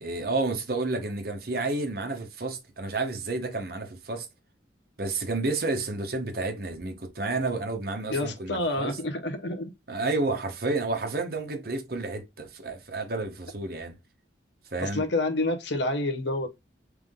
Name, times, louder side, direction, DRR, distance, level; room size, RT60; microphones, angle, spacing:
voice 1, 0.0-4.3 5.0-9.0 9.9-13.9 14.7-15.0, right 3 dB, 55° right, 1.1 m, -30 dB
voice 2, 8.1-9.7 14.8-16.5, left 2 dB, 70° left, 1.0 m, -28 dB
3.6 x 3.4 x 3.6 m
head